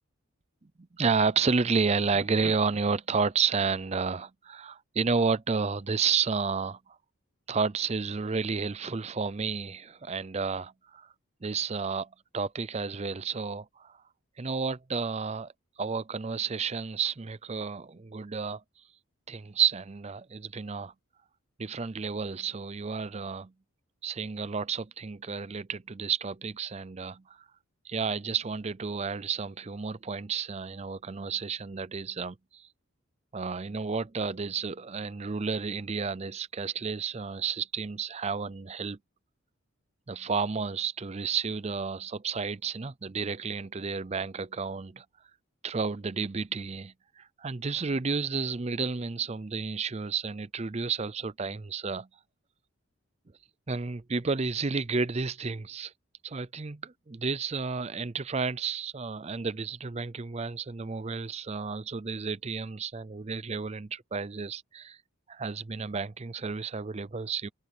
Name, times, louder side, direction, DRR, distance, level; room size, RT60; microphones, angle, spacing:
voice 1, 0.9-6.8 7.5-11.1 11.4-12.1 12.3-14.0 14.4-15.5 15.8-18.6 19.3-20.9 21.6-23.5 24.0-27.4 27.8-32.7 33.3-39.0 40.1-45.0 45.6-52.1 53.7-55.9 56.2-65.0 65.3-67.5, right 5 dB, 30° right, 0.5 m, -31 dB
head